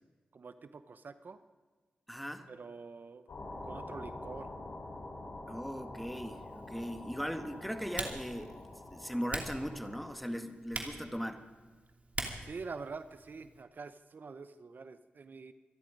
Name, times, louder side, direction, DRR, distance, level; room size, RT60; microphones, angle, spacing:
voice 1, 0.3-1.4 2.5-3.3 3.6-4.5 12.4-15.5, right 4 dB, 60° right, 12 dB, 0.8 m, -46 dB
voice 2, 2.1-2.5 5.5-8.6 8.9-11.5, equal, ahead, 8 dB, 1.7 m, -39 dB
sound 1, 3.3-10.1, left 2 dB, 80° left, 4.8 m, -46 dB
Typing, 6.1-13.6, right 2 dB, 40° right, 2.8 m, -45 dB
25.5 x 11.0 x 5.2 m, 1.4 s
cardioid pair, 55°, 4 cm